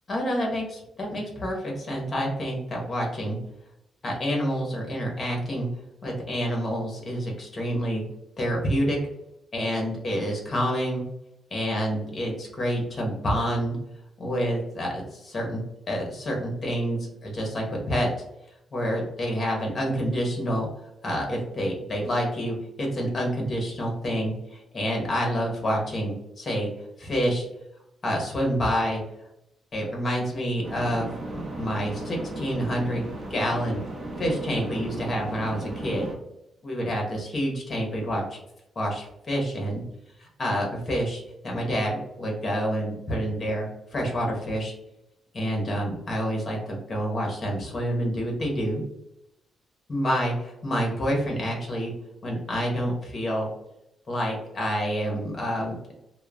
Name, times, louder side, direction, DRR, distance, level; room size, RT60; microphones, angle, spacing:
voice 1, 0.1-3.4 4.0-5.7 6.0-8.0 8.4-9.0 9.5-11.0 11.5-13.8 14.2-15.6 15.9-18.1 18.7-20.7 21.0-26.7 27.0-27.4 28.0-29.0 29.7-33.8 34.2-36.1 36.6-38.4 38.8-39.8 40.2-44.7 45.3-48.8 49.9-51.9 52.2-53.5 54.1-55.9, equal, 35° left, -1 dB, 0.8 m, -28 dB
sound 1, 30.6-36.1, right 2 dB, 40° right, 0.5 m, -36 dB
2.9 x 2.0 x 2.3 m, 0.85 s
cardioid pair, 125°, 0 cm